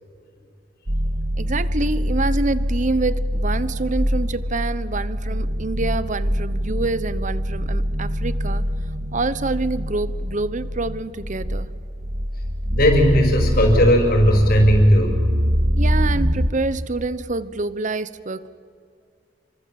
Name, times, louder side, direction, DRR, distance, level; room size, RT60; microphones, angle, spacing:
sound 1, 0.9-16.5, equal, 70° right, 1.7 m, -24 dB
voice 1, 1.4-8.6 9.1-11.7 15.8-18.5, right 3 dB, 45° right, 16 dB, 1.0 m, -26 dB
voice 2, 12.7-15.2, equal, 60° left, 2 dB, 5.2 m, -16 dB
29.0 x 24.5 x 7.7 m, 2.3 s
head